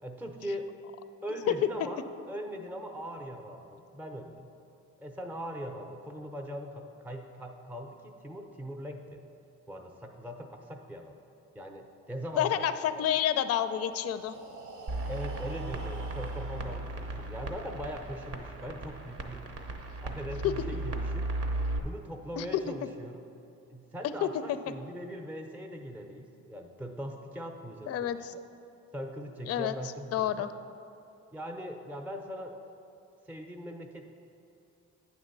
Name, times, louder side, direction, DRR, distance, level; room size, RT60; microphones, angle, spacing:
voice 1, 0.0-0.7 1.2-2.0 2.3-4.5 5.0-9.2 9.7-11.1 11.5-12.7 15.1-19.5 20.0-21.3 21.8-23.2 23.7-28.4 28.9-30.5 31.3-32.6 33.3-34.1, equal, 5° right, 4 dB, 0.6 m, -40 dB
voice 2, 12.4-14.3 20.4-20.5 22.4-22.5 24.2-24.3 27.9-28.3 29.5-29.7 30.1-30.5, left 10 dB, 55° left, 12 dB, 0.4 m, -29 dB
Breathing, 13.7-17.6, right 3 dB, 70° right, 1.1 m, -47 dB
sound 1, 14.9-21.8, right 2 dB, 50° right, 0.8 m, -36 dB
8.9 x 3.5 x 6.7 m, 2.7 s
cardioid pair, 90°, 30 cm